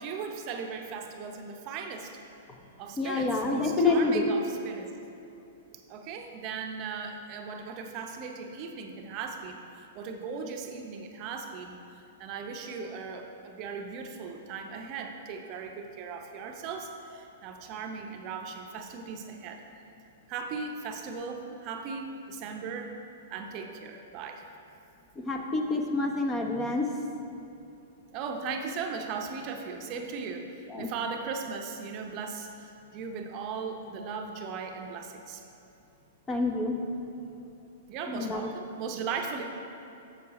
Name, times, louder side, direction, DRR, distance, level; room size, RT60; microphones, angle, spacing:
voice 1, 0.0-2.2 2.8-4.9 5.9-19.6 20.3-23.0 23.3-24.4 28.1-35.4 37.9-39.4, right 5 dB, 40° right, 4 dB, 0.7 m, -38 dB
voice 2, 3.0-4.3 25.2-26.9 30.7-30.9 36.3-36.8 38.1-38.5, left 3 dB, 20° left, 2 dB, 0.8 m, -27 dB
7.1 x 6.7 x 4.1 m, 2.9 s
hypercardioid pair, 125°, 0 cm